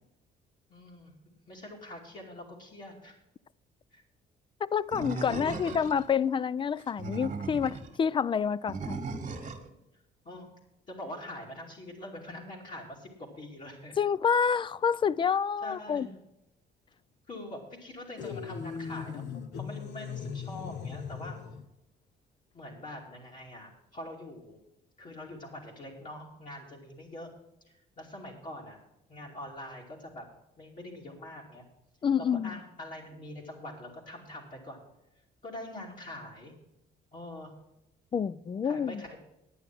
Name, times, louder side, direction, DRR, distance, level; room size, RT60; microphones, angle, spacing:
voice 1, 0.7-1.1 1.5-3.2 3.9-4.0 5.5-5.7 10.2-10.5 10.9-14.0 15.6-16.1 17.3-21.4 22.5-24.6 25.0-27.3 27.7-28.8 29.1-30.3 30.6-31.6 32.2-34.8 35.4-36.5 37.1-37.5 38.6-39.2, left 1 dB, 45° left, 2.7 m, -44 dB
voice 2, 4.6-9.0 14.0-16.1 32.0-32.6 38.1-39.0, left 7 dB, 25° left, 0.3 m, -28 dB
Animal, 4.9-6.1 6.8-7.9 8.7-9.7, right 3 dB, 40° right, 1.7 m, -37 dB
sound 1, 18.2-21.7, left 6 dB, 70° left, 1.1 m, -39 dB
10.5 x 9.0 x 5.9 m
cardioid pair, 105°, 19 cm